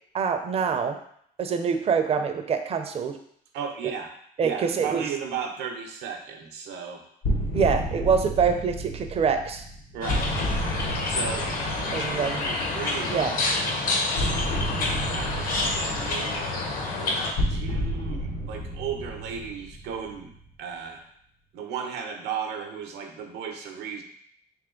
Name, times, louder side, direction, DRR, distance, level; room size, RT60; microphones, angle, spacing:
voice 1, 0.1-1.0 1.4-3.2 4.4-5.0 7.5-9.6 11.9-12.5 13.1-13.4, right 6 dB, 35° right, 7 dB, 0.5 m, -25 dB
voice 2, 3.5-7.0 9.9-10.3 11.0-13.8 14.7-20.3 20.6-21.0 21.5-24.0, right 7 dB, 85° right, 3 dB, 0.7 m, -36 dB
sound 1, 7.2-13.0 14.2-20.4, equal, 85° left, 1.2 m, -31 dB
sound 2, 10.0-17.3, left 2 dB, 55° left, 0.9 m, -28 dB
3.4 x 3.1 x 3.7 m, 0.67 s
cardioid pair, 110°, 17 cm